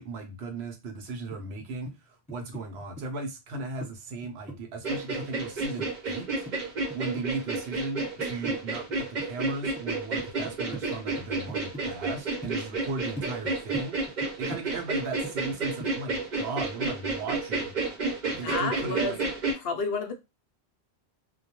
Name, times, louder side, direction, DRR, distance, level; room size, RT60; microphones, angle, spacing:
voice 1, 0.0-6.4 6.9-14.0 14.4-17.7 18.2-19.2, right 3 dB, 75° right, 0.9 m, -36 dB
sound 1, 1.3-2.0 2.3-3.9 4.2-5.9 6.2-8.9 9.2-9.8 10.2-10.8 11.2-11.8 12.2-12.5 12.9-15.5 15.8-16.0, right 1 dB, 5° left, 1.0 m, -41 dB
sound 2, 4.8-19.5, right 3 dB, 50° right, 0.8 m, -31 dB
voice 2, 18.3-19.3 19.5-20.1, left 3 dB, 65° left, 0.7 m, -31 dB
2.2 x 2.1 x 2.9 m
omnidirectional pair, 1.1 m